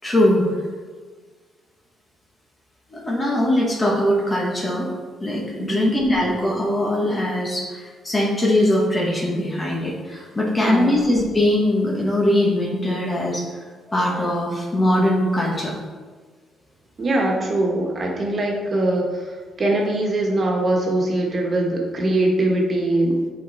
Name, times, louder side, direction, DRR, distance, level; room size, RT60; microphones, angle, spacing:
voice 1, 0.0-0.6 2.9-4.9 5.2-13.6 13.9-15.7, left 1 dB, 25° left, -3 dB, 1.4 m, -21 dB
voice 2, 5.6-6.0 10.6-11.0 17.0-23.2, right 1 dB, 40° right, -1 dB, 1.6 m, -22 dB
8.1 x 4.2 x 4.2 m, 1.5 s
cardioid pair, 90°, 0 cm